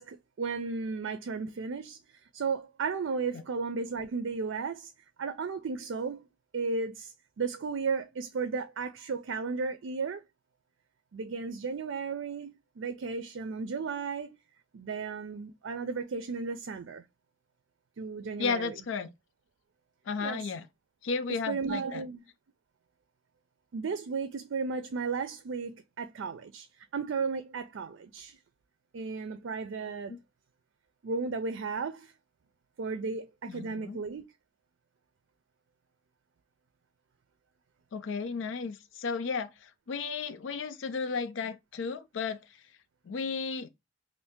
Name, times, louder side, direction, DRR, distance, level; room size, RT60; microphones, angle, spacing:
voice 1, 0.0-4.9 5.2-6.3 6.5-10.2 11.1-14.4 14.7-17.0 18.0-18.8 20.2-20.5 21.3-22.2 23.7-28.4 28.9-30.2 31.0-32.1 32.8-34.2, right 4 dB, 85° right, 0.4 m, -34 dB
voice 2, 18.4-19.1 20.1-20.6 21.0-22.0 30.1-30.2 33.5-34.0 37.9-42.4 43.1-43.7, left 5 dB, 75° left, 0.4 m, -34 dB
2.7 x 2.5 x 3.5 m
head